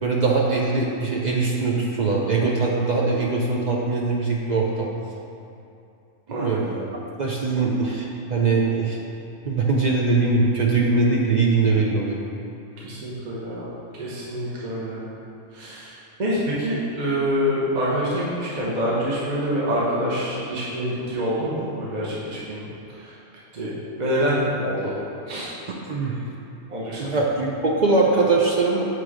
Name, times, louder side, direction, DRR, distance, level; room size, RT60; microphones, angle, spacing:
voice 1, 0.0-4.9 6.3-6.9 7.2-9.0 9.5-12.2 25.9-26.3 27.0-28.8, right 3 dB, 55° right, -3 dB, 0.5 m, -22 dB
voice 2, 12.8-13.7 14.0-15.1 15.5-22.6 23.0-23.1 23.5-24.9 25.3-25.5 26.7-27.1, equal, 40° right, -7 dB, 1.0 m, -26 dB
7.4 x 3.2 x 4.8 m, 2.7 s
omnidirectional pair, 1.3 m